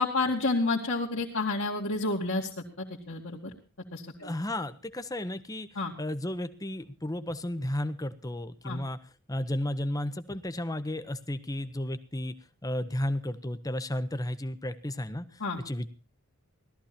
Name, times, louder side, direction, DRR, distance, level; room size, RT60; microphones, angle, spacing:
voice 1, 0.0-2.5 2.8-3.5 3.9-4.3 5.8-5.9 8.6-8.8 15.4-15.6, left 3 dB, 60° left, -5 dB, 2.2 m, -29 dB
voice 2, 4.2-5.7 6.0-9.0 9.3-12.3 12.6-15.3 15.6-15.9, left 1 dB, 15° left, 11 dB, 0.9 m, -33 dB
17.5 x 13.5 x 4.3 m, 0.35 s
head